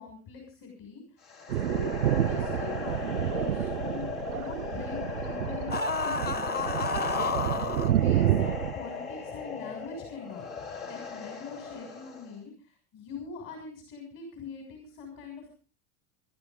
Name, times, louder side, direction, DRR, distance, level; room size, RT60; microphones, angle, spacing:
voice 1, 0.0-1.9 2.2-5.8 6.0-7.1 7.5-10.5 10.8-15.5, left 4 dB, 50° left, 3 dB, 6.4 m, -43 dB
sound 1, 1.2-12.4, left 5 dB, 75° left, 3.8 m, -38 dB
Thunder, 1.5-8.7, right 12 dB, 90° right, 0.6 m, -29 dB
sound 2, 5.7-7.9, left 4 dB, 20° left, 1.0 m, -30 dB
23.0 x 12.5 x 3.7 m, 0.34 s
hypercardioid pair, 85°, 43 cm